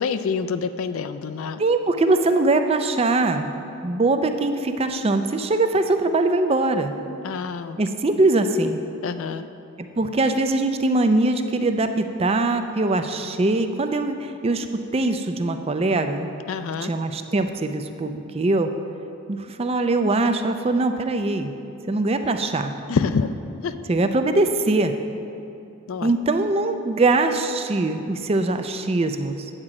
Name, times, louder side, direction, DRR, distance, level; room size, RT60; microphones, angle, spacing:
voice 1, 0.0-1.6 7.2-7.8 9.0-9.5 16.5-16.9 22.9-23.3 23.6-23.7 25.9-26.1, left 5 dB, 65° left, 11 dB, 0.4 m, -26 dB
voice 2, 1.6-3.5 3.8-7.0 7.8-8.8 9.8-14.7 14.9-16.3 16.8-18.7 19.3-21.5 21.9-22.7 23.9-24.9 26.0-29.5, right 2 dB, 25° right, 7 dB, 0.4 m, -22 dB
8.8 x 4.8 x 7.5 m, 2.8 s
head